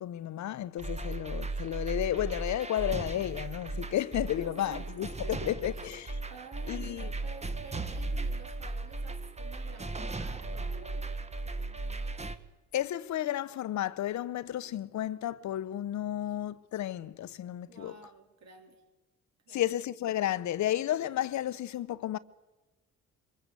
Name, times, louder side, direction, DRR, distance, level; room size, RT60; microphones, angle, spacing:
voice 1, 0.0-5.7 6.7-7.1 12.7-18.0 19.5-22.2, left 12 dB, 70° left, 0.9 m, -32 dB
sound 1, 0.8-12.3, right 2 dB, 20° right, 1.5 m, -36 dB
voice 2, 4.4-4.9 5.2-5.9 6.3-12.2 16.3-16.4 17.6-18.8 19.5-19.6, right 5 dB, 60° right, 4.2 m, -51 dB
23.5 x 21.0 x 8.3 m
cardioid pair, 90°, 30 cm